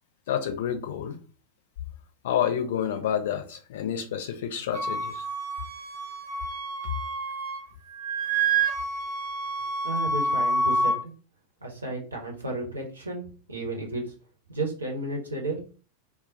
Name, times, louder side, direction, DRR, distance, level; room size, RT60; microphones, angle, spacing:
voice 1, 0.3-1.2 2.2-5.2, left 9 dB, 55° left, 0.5 m, -29 dB
Wind instrument woodwind instrument, 4.7-7.6 7.9-11.0, right 2 dB, 50° right, 0.8 m, -28 dB
voice 2, 9.8-11.1 11.6-14.1 14.5-15.7, right 2 dB, 80° right, 0.9 m, -33 dB
2.3 x 2.1 x 3.7 m
figure-of-eight pair, 90°, 0 cm